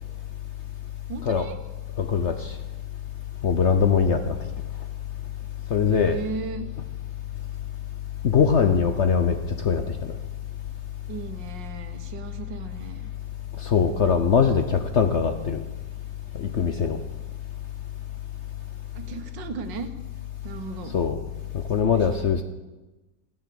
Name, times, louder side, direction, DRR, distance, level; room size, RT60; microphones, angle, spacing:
voice 1, 1.1-1.6 5.9-6.7 11.1-13.1 18.9-19.9 20.4-20.9 21.8-22.3, right 5 dB, 85° right, 9 dB, 1.7 m, -36 dB
voice 2, 2.0-2.5 3.4-4.4 5.7-6.2 8.2-9.4 9.6-10.1 13.6-15.6 16.3-17.0 20.9-21.2 21.5-22.4, left 6 dB, 55° left, 7 dB, 0.8 m, -22 dB
15.5 x 7.1 x 8.5 m, 1.1 s
omnidirectional pair, 1.9 m